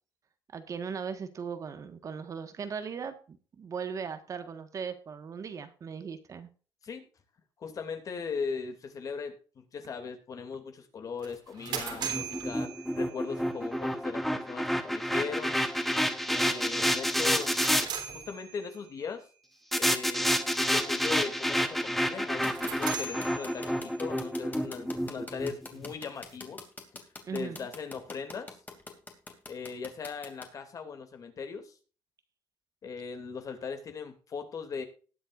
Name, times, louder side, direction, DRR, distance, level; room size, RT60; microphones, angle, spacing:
voice 1, 0.5-6.5 27.2-27.7, right 6 dB, 45° right, 9 dB, 1.6 m, -38 dB
voice 2, 7.6-15.5 16.3-17.8 18.1-19.3 19.8-20.3 20.7-26.6 27.3-28.6 29.5-31.7 32.8-34.8, left 5 dB, 45° left, 7 dB, 2.7 m, -39 dB
sound 1, 11.2-13.5 17.2-18.9 22.3-24.1, right 6 dB, 70° right, 3.5 m, -39 dB
sound 2, 11.7-17.9 19.7-25.9, equal, ahead, 1.2 m, -29 dB
sound 3, 22.4-30.5, left 3 dB, 20° left, 2.7 m, -43 dB
19.5 x 7.9 x 2.6 m, 0.38 s
cardioid pair, 130°, 8 cm